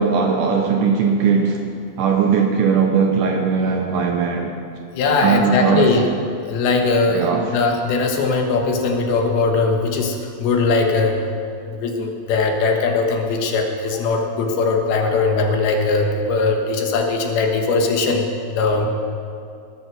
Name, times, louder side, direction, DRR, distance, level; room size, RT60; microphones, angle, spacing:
voice 1, 0.0-1.6 2.0-4.5 5.2-5.9 7.1-7.5, right 5 dB, 75° right, 2 dB, 2.0 m, -18 dB
voice 2, 4.9-6.1 6.5-11.2 11.7-18.9, left 3 dB, 80° left, 3 dB, 3.1 m, -20 dB
18.5 x 6.6 x 6.2 m, 2.4 s
omnidirectional pair, 4.4 m